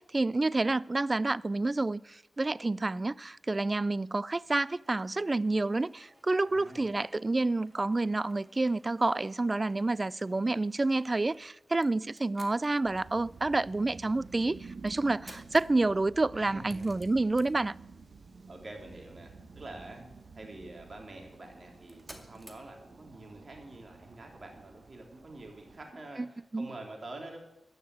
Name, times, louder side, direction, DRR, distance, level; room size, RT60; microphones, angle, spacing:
voice 1, 0.0-17.7 26.2-26.3 26.5-26.7, right 2 dB, 30° right, 0.3 m, -29 dB
sound 1, 4.8-23.2, right 1 dB, 15° right, 2.3 m, -59 dB
voice 2, 6.4-6.9 16.3-16.9 18.5-20.1 20.4-27.4, right 2 dB, 50° right, 3.5 m, -47 dB
sound 2, 12.8-25.9, right 4 dB, 70° right, 1.3 m, -51 dB
14.5 x 6.6 x 8.3 m
cardioid pair, 60°, 0 cm